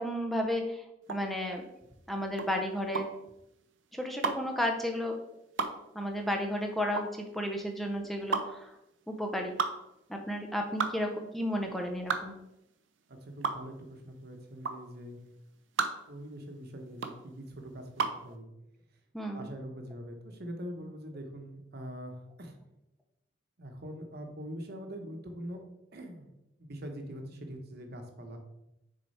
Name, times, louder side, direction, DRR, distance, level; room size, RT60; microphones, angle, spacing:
voice 1, 0.0-1.6 2.1-3.1 3.9-5.1 5.9-8.8 9.1-9.6 10.1-12.4 19.1-19.5, equal, ahead, 3 dB, 0.5 m, -33 dB
sound 1, 1.0-18.3, right 5 dB, 75° right, 0.7 m, -35 dB
voice 2, 13.1-15.2 16.1-18.5 19.3-22.6 23.6-25.6 25.9-26.3 26.6-28.4, equal, 55° right, 5 dB, 1.0 m, -43 dB
6.5 x 4.4 x 4.2 m, 0.88 s
head